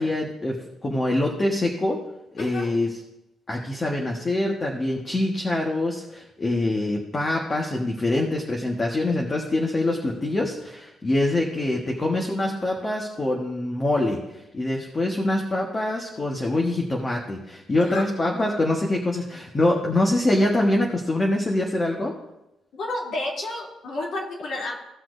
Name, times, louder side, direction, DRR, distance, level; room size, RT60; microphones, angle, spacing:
voice 1, 0.0-2.0 2.3-3.0 3.5-22.1, left 1 dB, 30° left, 0 dB, 1.3 m, -24 dB
voice 2, 2.4-2.7 17.8-18.1 22.7-24.8, left 2 dB, 65° left, -3 dB, 2.8 m, -31 dB
17.0 x 5.9 x 2.6 m, 0.91 s
cardioid pair, 90°, 0 cm